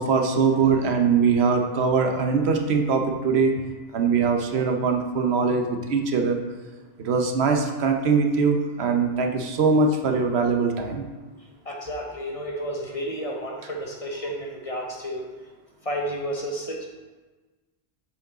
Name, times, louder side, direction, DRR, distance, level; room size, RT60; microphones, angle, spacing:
voice 1, 0.0-3.5 3.9-6.4 7.0-11.1, right 5 dB, 75° right, 4 dB, 1.0 m, -22 dB
voice 2, 11.7-15.3 15.8-16.9, equal, 40° left, 0 dB, 0.7 m, -31 dB
7.0 x 4.7 x 3.8 m, 1.3 s
omnidirectional pair, 1.1 m